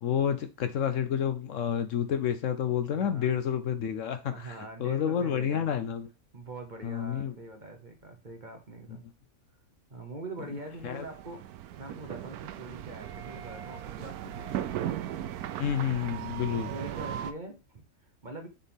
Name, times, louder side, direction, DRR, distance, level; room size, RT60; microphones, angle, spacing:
voice 1, 0.0-6.1 6.8-7.3 10.8-11.0 15.6-16.7, left 8 dB, 65° left, 0.9 m, -29 dB
voice 2, 2.9-3.4 4.2-5.9 6.3-9.0 9.9-11.5 11.8-15.0 16.5-18.5, right 2 dB, 35° right, 1.1 m, -43 dB
sound 1, 10.6-17.3, right 11 dB, 85° right, 1.1 m, -37 dB
7.1 x 4.4 x 3.5 m
omnidirectional pair, 1.5 m